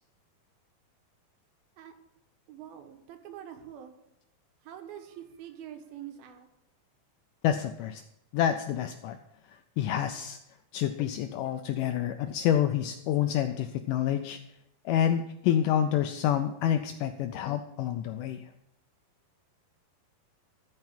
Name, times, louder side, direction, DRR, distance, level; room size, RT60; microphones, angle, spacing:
voice 1, 2.5-3.9 4.6-6.5, right 10 dB, 80° right, 6 dB, 2.9 m, -45 dB
voice 2, 7.4-8.0 8.3-9.2 9.8-10.4 10.7-14.4 14.9-18.5, left 10 dB, 85° left, 8 dB, 1.9 m, -28 dB
13.5 x 4.7 x 7.3 m, 0.82 s
omnidirectional pair, 4.2 m